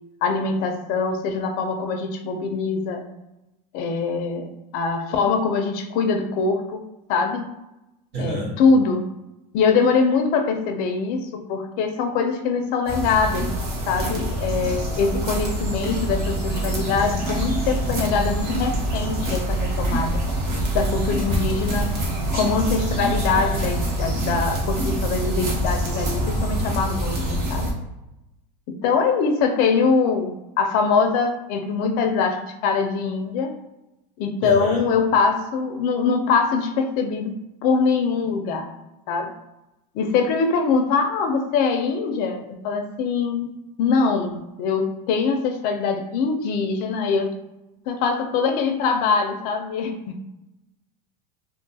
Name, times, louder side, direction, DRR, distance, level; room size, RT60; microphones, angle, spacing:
voice 1, 0.2-3.0 3.7-6.8 7.1-7.5 8.2-9.1 9.5-13.5 13.9-20.2 20.7-21.9 22.3-27.7 28.7-33.5 34.2-38.7 39.1-39.3 39.9-43.5 43.8-47.3 47.9-50.2, left 5 dB, 45° left, 6 dB, 0.4 m, -23 dB
voice 2, 8.1-8.6 34.4-35.0, right 2 dB, 80° right, -4 dB, 1.2 m, -30 dB
sound 1, 12.9-27.7, right 1 dB, 50° right, 0.9 m, -25 dB
2.4 x 2.2 x 2.7 m, 0.93 s
supercardioid pair, 145°, 21 cm